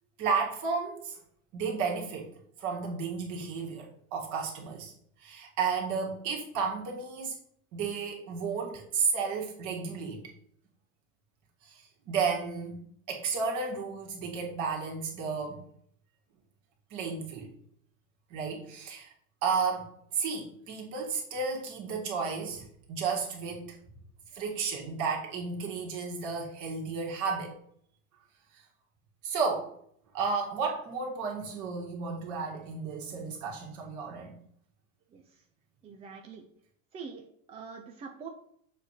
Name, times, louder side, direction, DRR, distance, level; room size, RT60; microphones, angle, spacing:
voice 1, 0.2-1.2 1.5-2.3 2.6-4.9 5.2-7.4 7.7-10.2 11.6-15.6 16.9-17.5 18.3-19.1 19.4-23.7 24.3-27.5 29.2-29.7 30.1-34.4, right 5 dB, 45° right, -1 dB, 2.1 m, -33 dB
voice 2, 35.8-36.5 36.9-38.3, right 5 dB, 15° right, 2 dB, 0.4 m, -44 dB
6.9 x 3.3 x 5.8 m, 0.67 s
supercardioid pair, 135°, 41 cm